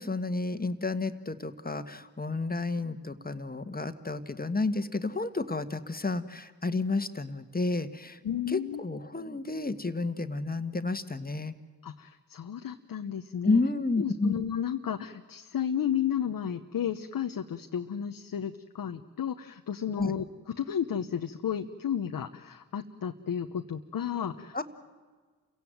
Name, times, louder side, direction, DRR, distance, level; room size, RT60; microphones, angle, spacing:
voice 1, 0.0-8.2 8.5-11.5 13.4-14.4 20.0-20.2 24.5-24.6, left 3 dB, 25° left, 11 dB, 1.7 m, -31 dB
voice 2, 8.2-8.8 11.8-13.6 14.0-24.6, left 9 dB, 70° left, 6 dB, 1.1 m, -33 dB
28.5 x 16.5 x 9.3 m, 1.5 s
supercardioid pair, 45°, 36 cm